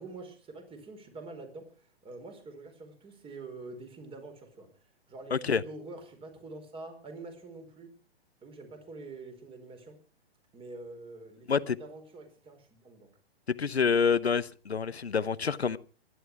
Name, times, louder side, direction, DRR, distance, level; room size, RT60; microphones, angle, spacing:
voice 1, 0.0-4.7 5.1-7.9 8.4-10.0 10.5-13.1, right 3 dB, 15° right, 4.6 m, -46 dB
voice 2, 5.3-5.6 11.5-11.8 13.5-15.8, left 6 dB, 90° left, 0.9 m, -27 dB
22.5 x 11.0 x 4.8 m
figure-of-eight pair, 125°, 31 cm